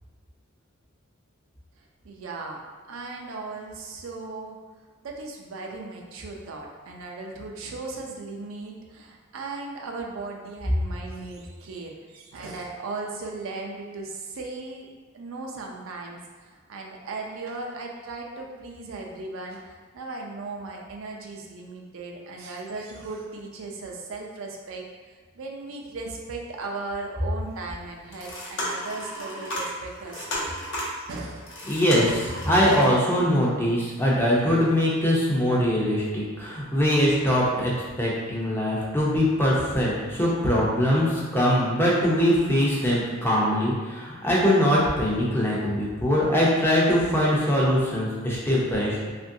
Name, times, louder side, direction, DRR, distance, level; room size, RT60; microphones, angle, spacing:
voice 1, 2.0-2.6 2.9-4.6 5.0-14.9 15.1-31.5, right 3 dB, 65° right, 0 dB, 0.4 m, -37 dB
sound 1, 27.4-27.5 28.0-33.0, equal, 60° left, 0.7 m, -33 dB
voice 2, 31.7-37.7 38.0-49.1, equal, 10° left, -5 dB, 0.5 m, -22 dB
2.9 x 2.5 x 2.6 m, 1.5 s
head